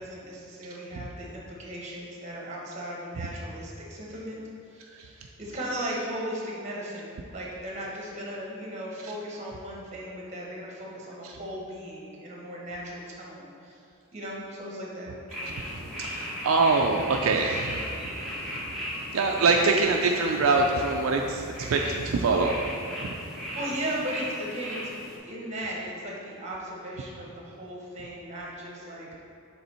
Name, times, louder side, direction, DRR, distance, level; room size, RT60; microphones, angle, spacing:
voice 1, 0.0-4.4 4.7-13.8 14.1-15.1 19.4-19.5 23.5-24.8 25.2-29.1, equal, 35° right, -3 dB, 1.2 m, -37 dB
sound 1, 15.3-25.2, equal, ahead, 1.4 m, -37 dB
voice 2, 16.0-17.9 18.5-18.6 19.1-23.1, right 3 dB, 75° right, 2 dB, 0.4 m, -24 dB
6.8 x 3.6 x 4.3 m, 2.5 s
head